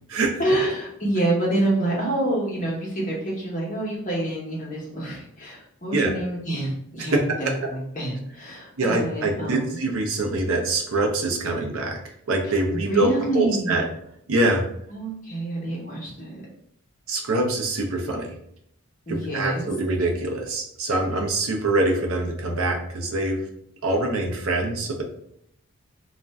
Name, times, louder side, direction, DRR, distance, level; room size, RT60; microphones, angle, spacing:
voice 1, 0.4-9.8 12.4-13.8 14.9-16.4 19.1-19.7, right 1 dB, 35° left, -4 dB, 0.9 m, -27 dB
voice 2, 7.1-7.5 8.8-12.0 12.3-13.9 14.3-14.6 17.1-18.3 19.1-23.4 23.8-25.0, right 2 dB, 70° right, 2 dB, 0.5 m, -24 dB
2.4 x 2.1 x 3.5 m, 0.72 s
head